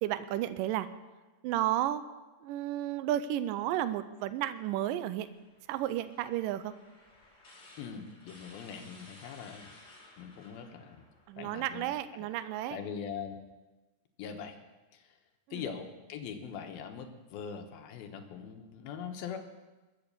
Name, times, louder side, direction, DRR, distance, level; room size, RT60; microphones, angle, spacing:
voice 1, 0.0-0.9 1.4-2.0 2.4-5.3 5.7-6.7 11.3-12.8 15.5-15.7, right 13 dB, 85° right, 12 dB, 1.9 m, -32 dB
sound 1, 5.2-11.7, left 2 dB, 25° left, 3.1 m, -57 dB
voice 2, 7.8-9.7 10.2-11.1 11.4-11.9 12.2-12.3 12.7-13.4 14.2-14.6 14.9-15.1 15.5-19.4, left 7 dB, 70° left, 6 dB, 2.9 m, -42 dB
21.5 x 8.3 x 6.9 m, 1.2 s
omnidirectional pair, 4.7 m